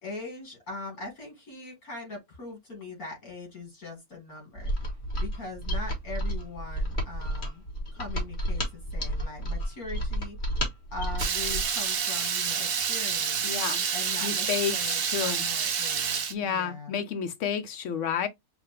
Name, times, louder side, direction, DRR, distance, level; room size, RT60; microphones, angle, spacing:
voice 1, 0.0-4.7 5.2-7.6 7.9-10.4 10.9-13.4 13.9-17.0, left 3 dB, 75° left, 3.0 m, -41 dB
Mechanisms, 4.6-11.8, equal, 35° left, 1.6 m, -31 dB
Water tap faucet / Liquid, 11.2-16.3, right 7 dB, 55° right, 0.7 m, -28 dB
voice 2, 13.4-13.8 14.2-15.4 16.3-18.3, left 8 dB, 60° left, 1.0 m, -30 dB
5.7 x 2.2 x 3.4 m
omnidirectional pair, 1.6 m